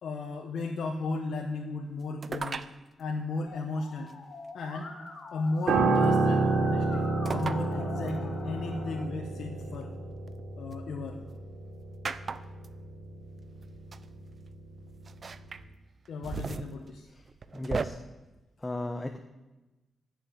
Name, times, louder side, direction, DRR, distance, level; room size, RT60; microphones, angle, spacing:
voice 1, 0.0-2.6 3.0-4.1 4.5-4.9 5.3-9.9 10.6-11.2 16.1-17.1, left 3 dB, 80° left, 0 dB, 1.3 m, -35 dB
sound 1, 2.2-2.7 4.1-4.2 5.7-6.0 7.2-7.6 8.1-8.2 9.6-10.8 12.0-12.7 13.6-13.7 13.9-14.0 15.0-15.6 16.0-17.8, right 4 dB, 50° right, 0.7 m, -37 dB
Musical instrument, 3.5-9.0, left 3 dB, 60° left, 2.1 m, -45 dB
Piano, 5.7-15.0 15.3-15.6, right 3 dB, 70° right, 3.6 m, -30 dB
voice 2, 17.5-18.0 18.6-19.2, left 2 dB, 20° left, 5 dB, 1.1 m, -34 dB
13.5 x 6.7 x 9.4 m, 1.1 s
cardioid pair, 70°, 0 cm